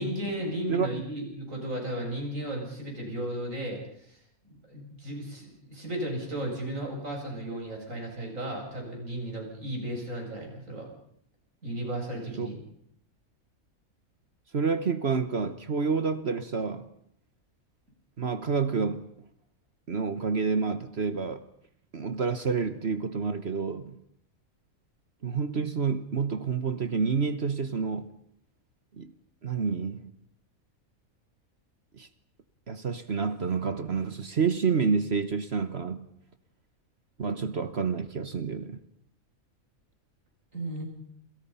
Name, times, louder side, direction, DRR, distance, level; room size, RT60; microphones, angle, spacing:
voice 1, 0.0-10.9 11.6-12.6 40.5-40.8, right 1 dB, 65° right, 8.3 m, -35 dB
voice 2, 0.7-1.0 12.4-12.5 14.5-16.9 18.2-19.1 19.9-21.4 21.9-24.0 25.2-28.1 29.0-29.1 29.4-30.1 32.0-32.1 32.7-36.1 37.2-38.8, right 5 dB, 50° right, 1.5 m, -29 dB
28.5 x 28.0 x 5.7 m
omnidirectional pair, 1.5 m